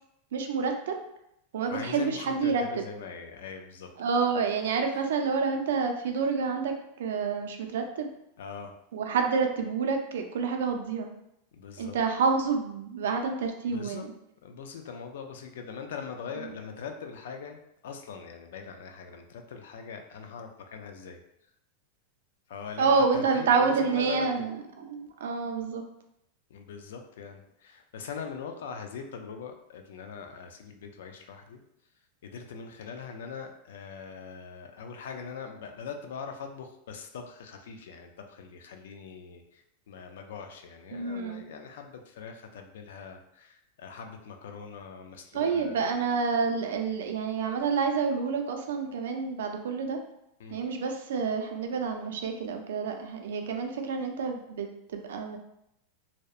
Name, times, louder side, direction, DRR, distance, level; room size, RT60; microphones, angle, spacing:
voice 1, 0.3-0.9 1.5-2.6 4.0-8.1 8.9-11.1 11.8-14.1 22.8-25.8 40.9-41.4 45.3-50.0 50.5-55.4, right 5 dB, 90° right, 4 dB, 0.4 m, -28 dB
voice 2, 1.7-3.9 4.9-5.0 8.4-8.7 11.5-12.0 13.7-14.0 14.4-21.2 22.5-24.3 26.5-31.6 32.2-45.8 50.4-50.6, left 6 dB, 75° left, 5 dB, 0.3 m, -42 dB
2.7 x 2.0 x 2.3 m, 0.80 s
supercardioid pair, 175°, 0 cm